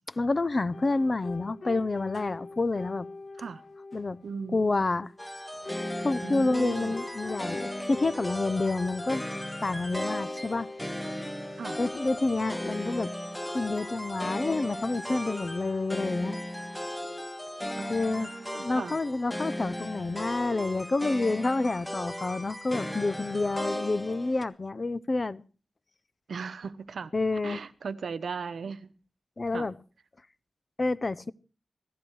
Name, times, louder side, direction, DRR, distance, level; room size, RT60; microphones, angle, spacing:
voice 1, 0.2-3.1 3.9-4.2 4.5-5.1 6.0-9.2 9.6-10.7 11.8-13.1 13.5-16.4 17.9-18.3 18.5-25.4 27.1-27.6 29.4-29.7 30.8-31.3, left 3 dB, 40° left, 0.7 m, -28 dB
sound 1, 0.7-16.9, left 3 dB, 70° left, 1.9 m, -44 dB
voice 2, 4.2-4.6 6.2-7.0 11.6-11.8 17.8-19.0 26.3-27.1 27.4-28.9 29.5-29.7, right 5 dB, 80° right, 0.9 m, -37 dB
sound 2, 5.2-24.4, left 1 dB, 10° left, 1.3 m, -36 dB
16.0 x 14.5 x 4.7 m
wide cardioid pair, 80°, 0 cm